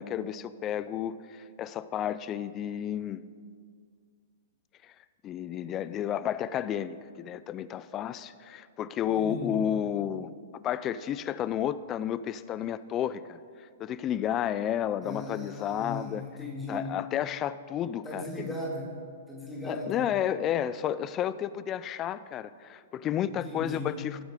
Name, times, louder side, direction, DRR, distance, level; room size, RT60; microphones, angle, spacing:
voice 1, 0.0-3.2 4.8-4.9 5.2-10.3 10.6-13.4 13.8-16.2 16.7-18.5 19.6-24.2, left 10 dB, 30° left, 16 dB, 0.4 m, -31 dB
voice 2, 9.1-9.6 15.0-16.9 18.0-18.9 19.3-20.1 23.3-24.0, left 1 dB, 5° left, -4 dB, 2.2 m, -37 dB
18.0 x 7.2 x 3.8 m, 2.1 s
hypercardioid pair, 125°, 0 cm